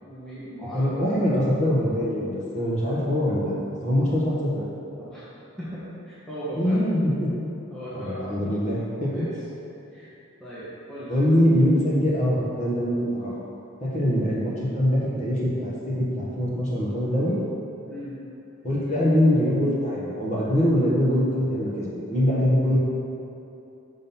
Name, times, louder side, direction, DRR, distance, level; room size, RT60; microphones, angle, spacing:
voice 1, 0.0-1.0 5.0-5.3 5.6-6.9 7.7-8.4 9.1-9.3 9.9-10.1 10.4-11.1 17.9-18.2 18.8-19.1, equal, 5° left, -11 dB, 0.9 m, -37 dB
voice 2, 0.7-3.5 3.8-4.7 6.6-7.3 7.9-9.2 11.1-13.3 13.8-17.4 18.6-22.8, equal, 35° left, -7 dB, 1.3 m, -23 dB
5.7 x 3.8 x 5.5 m, 2.8 s
head